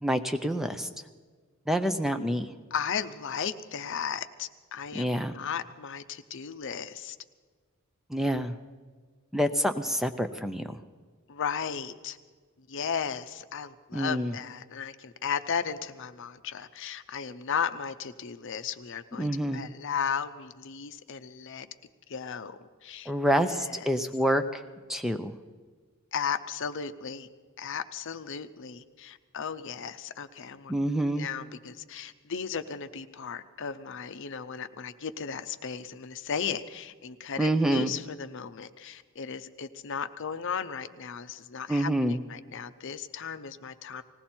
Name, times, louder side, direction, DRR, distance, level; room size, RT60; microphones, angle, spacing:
voice 1, 0.0-0.9 1.7-2.5 4.9-5.3 8.1-8.5 9.3-10.6 13.9-14.3 19.2-19.6 23.1-24.6 24.9-25.3 30.7-31.3 37.4-37.9 41.7-42.2, right 1 dB, ahead, 7 dB, 0.5 m, -27 dB
voice 2, 2.7-7.2 11.3-12.2 12.6-21.7 22.1-23.1 23.4-23.9 26.1-27.3 27.6-30.7 31.2-44.0, left 7 dB, 60° left, 11 dB, 0.6 m, -35 dB
19.5 x 16.5 x 4.4 m, 1.5 s
head